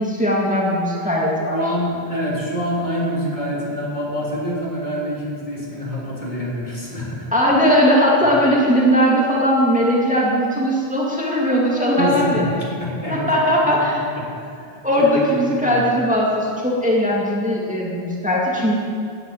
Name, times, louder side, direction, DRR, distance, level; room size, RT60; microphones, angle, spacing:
voice 1, 0.0-1.6 7.3-12.5 13.1-14.0 14.8-18.7, equal, 5° right, -5 dB, 2.1 m, -18 dB
voice 2, 1.5-7.3 11.9-15.1 15.4-15.8, equal, 45° left, -5 dB, 3.4 m, -26 dB
13.5 x 8.1 x 9.3 m, 2.5 s
omnidirectional pair, 1.1 m